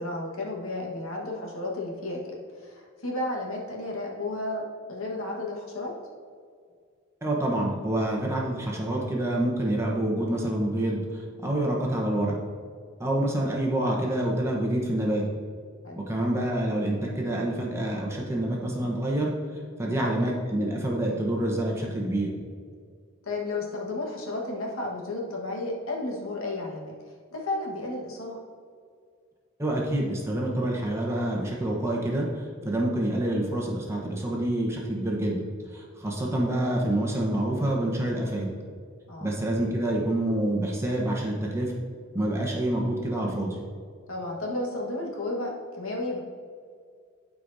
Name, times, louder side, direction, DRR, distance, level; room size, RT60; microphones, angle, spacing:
voice 1, 0.0-4.6 4.9-5.9 15.8-16.0 19.8-20.2 23.2-26.9 27.3-28.4 39.1-39.3 44.1-46.2, left 2 dB, 85° left, -2 dB, 1.5 m, -33 dB
voice 2, 7.2-12.3 13.0-15.2 16.0-19.3 19.8-22.3 29.6-35.4 35.7-38.5 39.2-41.7 42.1-43.6, right 1 dB, 15° right, -2 dB, 1.0 m, -27 dB
12.0 x 4.8 x 2.7 m, 2.1 s
head